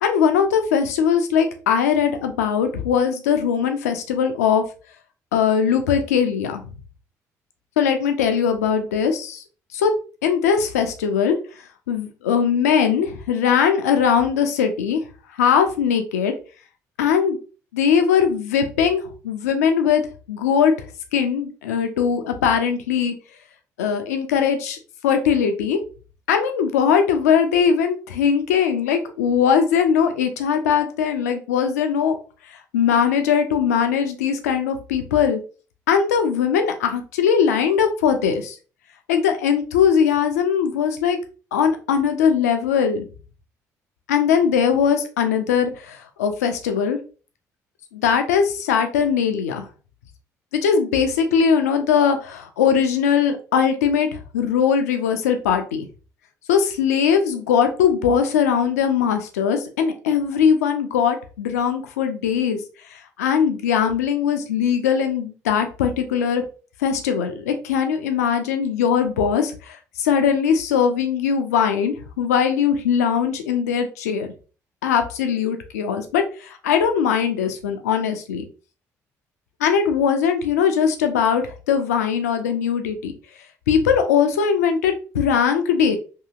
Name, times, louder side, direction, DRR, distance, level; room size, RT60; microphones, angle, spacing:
voice 1, 0.0-4.6 5.3-6.7 7.8-9.4 9.7-9.9 10.2-11.4 11.9-15.0 15.3-16.3 17.0-17.4 17.7-20.0 20.3-20.7 21.1-23.1 23.8-25.8 26.3-32.2 32.4-35.4 35.9-38.6 39.1-41.2 41.5-43.0 44.1-47.0 47.9-49.7 50.6-55.9 56.5-62.6 62.9-66.4 66.8-74.3 74.8-78.4 79.6-83.1 83.7-86.0, left 7 dB, 75° left, 7 dB, 0.4 m, -20 dB
2.8 x 2.7 x 2.3 m, 0.36 s
figure-of-eight pair, 50°, 9 cm